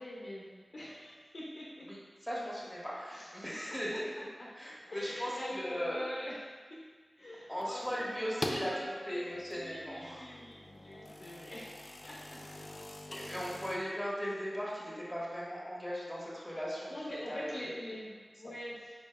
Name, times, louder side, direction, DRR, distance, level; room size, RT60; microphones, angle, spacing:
voice 1, 0.0-1.9 3.1-3.4 4.9-6.3 6.7-6.8 7.2-9.2 9.5-12.4 16.9-18.9, left 1 dB, 80° left, -7 dB, 0.9 m, -45 dB
voice 2, 2.2-4.0 4.5-6.0 7.5-10.2 13.1-16.9 17.3-17.4, equal, ahead, -7 dB, 1.5 m, -38 dB
sound 1, 7.6-8.7 9.3-13.8, left 1 dB, 50° left, 0.4 m, -44 dB
5.3 x 4.5 x 2.2 m, 1.5 s
wide cardioid pair, 80°, 0 cm